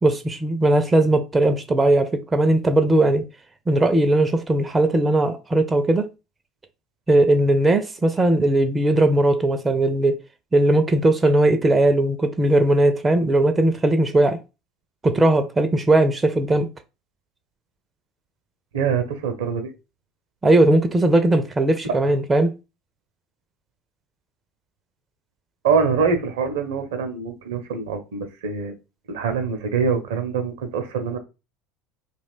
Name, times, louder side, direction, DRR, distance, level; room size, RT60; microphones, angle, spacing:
voice 1, 0.0-3.3 3.7-6.1 7.1-10.2 10.5-14.4 15.0-16.7 20.4-22.5, right 2 dB, 20° right, 0.4 m, -18 dB
voice 2, 18.7-19.7 21.8-22.0 25.6-28.7 29.1-31.2, right 5 dB, 70° right, 0.5 m, -24 dB
2.4 x 2.2 x 3.3 m
figure-of-eight pair, 70°, 0 cm